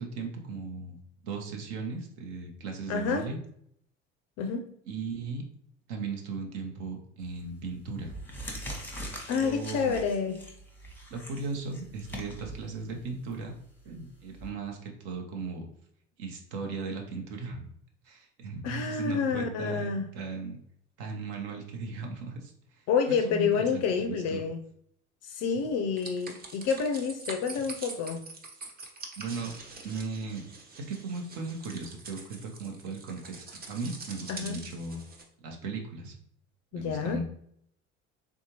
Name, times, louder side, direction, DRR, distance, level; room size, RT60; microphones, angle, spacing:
voice 1, 0.0-3.4 4.9-5.4 5.9-8.1 9.3-10.0 11.1-13.5 13.8-15.6 16.2-17.6 18.0-20.6 21.0-22.5 23.1-24.4 29.2-29.5 29.8-30.5 30.9-35.0 35.4-36.1 36.7-37.2, right 4 dB, 65° right, 2 dB, 0.8 m, -37 dB
voice 2, 2.9-3.3 4.4-4.7 9.3-10.4 18.6-20.1 22.9-24.6 25.2-28.2 34.3-34.6 36.7-37.2, left 6 dB, 45° left, 6 dB, 0.4 m, -29 dB
sound 1, 7.2-7.5 8.0-14.5, equal, 5° left, 0.8 m, -42 dB
sound 2, 26.0-35.2, right 3 dB, 25° right, 0.7 m, -45 dB
3.5 x 2.6 x 2.9 m, 0.70 s
hypercardioid pair, 65°, 37 cm